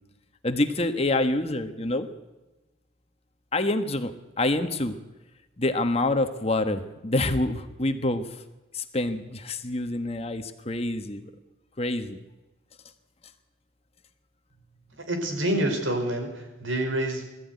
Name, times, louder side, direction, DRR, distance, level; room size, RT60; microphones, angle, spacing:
voice 1, 0.4-2.1 3.5-5.0 5.6-8.2 8.7-11.3 11.8-12.2, left 2 dB, 30° left, 8 dB, 1.3 m, -27 dB
voice 2, 15.0-17.3, right 1 dB, 80° right, 4 dB, 4.9 m, -27 dB
21.0 x 14.0 x 9.5 m, 1.1 s
head